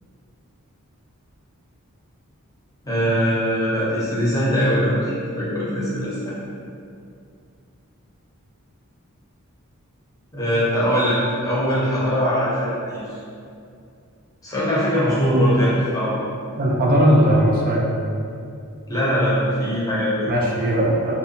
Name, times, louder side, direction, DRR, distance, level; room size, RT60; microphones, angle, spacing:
voice 1, 2.8-6.3 10.3-13.2 14.4-16.1 18.9-20.3, equal, 15° left, -9 dB, 0.7 m, -21 dB
voice 2, 15.3-15.7 16.6-17.9 20.3-21.1, equal, 40° right, -3 dB, 0.4 m, -18 dB
2.5 x 2.1 x 2.7 m, 2.4 s
head